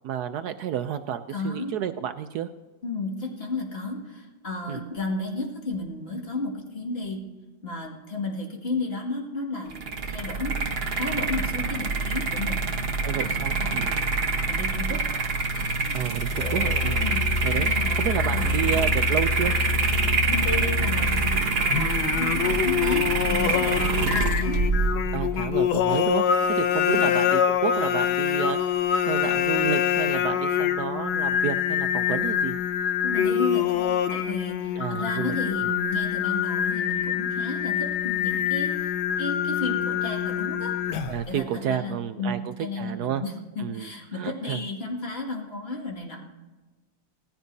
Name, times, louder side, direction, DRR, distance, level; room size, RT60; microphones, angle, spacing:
voice 1, 0.0-2.5 4.7-4.8 13.0-14.0 15.9-17.1 17.4-17.7 18.0-19.5 25.1-26.2 26.5-28.6 29.0-32.6 34.8-35.4 35.6-35.7 41.1-43.2 43.6-44.6, right 10 dB, 70° right, 10 dB, 1.0 m, -30 dB
voice 2, 1.3-1.7 2.8-7.2 7.6-10.6 11.0-12.6 13.1-14.1 14.5-15.0 15.5-16.0 17.0-17.2 17.5-18.8 20.3-24.6 26.9-27.2 33.0-38.9 39.2-40.7 41.3-46.2, left 2 dB, 30° left, 0 dB, 2.2 m, -33 dB
sound 1, 9.7-26.0, right 3 dB, 40° right, 0.9 m, -26 dB
Musical instrument, 16.3-21.5, left 3 dB, 70° left, 0.4 m, -28 dB
Singing, 21.7-41.3, left 9 dB, 85° left, 1.6 m, -25 dB
18.5 x 14.5 x 2.7 m, 1.2 s
omnidirectional pair, 2.1 m